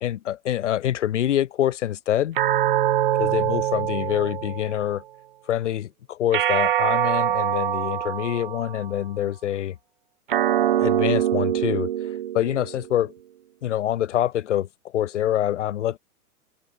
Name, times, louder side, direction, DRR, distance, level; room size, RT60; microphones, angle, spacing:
voice 1, 0.0-2.4 3.1-5.0 5.5-9.8 10.8-12.1 12.3-13.1 13.6-16.0, left 11 dB, 50° left, 0.5 m, -25 dB
sound 1, 2.4-4.9 6.3-8.9 10.3-12.9, right 11 dB, 35° right, 1.1 m, -24 dB
hypercardioid pair, 180°, 47 cm